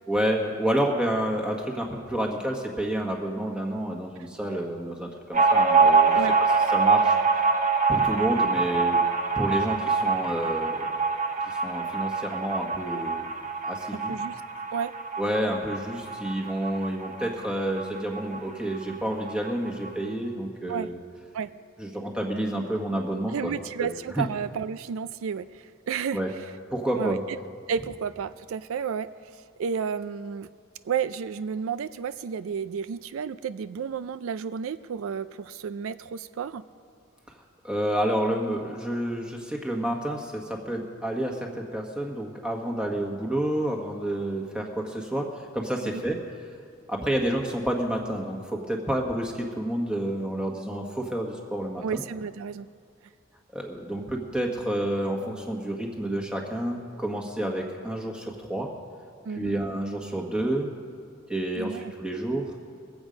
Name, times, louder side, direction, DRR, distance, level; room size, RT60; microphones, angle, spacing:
voice 1, 0.1-6.2 6.7-7.2 7.9-9.0 9.4-10.8 11.4-13.3 13.6-14.1 15.2-21.0 21.8-23.5 23.8-24.3 26.1-26.3 26.7-27.2 37.6-46.2 46.9-52.0 53.5-58.7 59.3-60.7 61.3-62.5, right 1 dB, 5° right, 0 dB, 1.3 m, -29 dB
sound 1, 5.3-18.5 18.7-18.8 19.1-19.9, right 4 dB, 35° right, 1.0 m, -24 dB
voice 2, 13.9-14.4 14.7-15.0 20.7-20.9 21.3-21.5 23.3-26.2 27.0-27.2 27.7-30.5 30.8-36.6 45.8-45.9 51.8-52.7 59.3-59.6 61.5-61.9, right 6 dB, 75° right, 13 dB, 0.4 m, -32 dB
22.0 x 8.1 x 5.1 m, 2.3 s
head